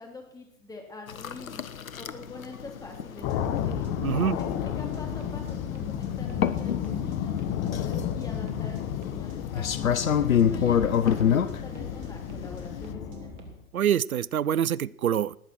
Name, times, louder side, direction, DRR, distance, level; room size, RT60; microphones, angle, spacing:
voice 1, 0.0-1.6 1.9-3.9 4.3-9.8 10.2-13.3, left 3 dB, 10° left, 2 dB, 3.3 m, -45 dB
sound 1, 1.1-12.9, left 8 dB, 70° left, 1.1 m, -29 dB
sound 2, 3.2-13.6, left 9 dB, 30° left, 1.2 m, -32 dB
sound 3, 3.2-13.5, right 6 dB, 55° right, 3.6 m, -48 dB
voice 2, 4.0-4.4 10.4-10.6 13.7-15.4, right 9 dB, 85° right, 23 dB, 0.6 m, -26 dB
19.5 x 8.6 x 6.2 m, 0.73 s
figure-of-eight pair, 115°, 42 cm